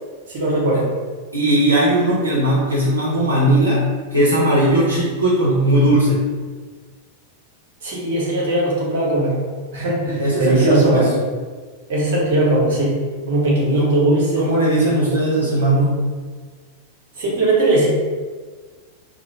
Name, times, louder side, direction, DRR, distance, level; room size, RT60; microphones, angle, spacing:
voice 1, 0.3-0.8 7.8-9.3 9.7-11.1 11.9-12.9 13.3-14.5 17.2-17.9, right 1 dB, 55° right, -4 dB, 1.0 m, -18 dB
voice 2, 1.3-3.8 4.1-6.2 10.2-11.1 13.8-13.9 14.4-16.0, right 1 dB, 80° right, -7 dB, 0.7 m, -18 dB
2.9 x 2.1 x 3.9 m, 1.5 s
figure-of-eight pair, 90°, 0 cm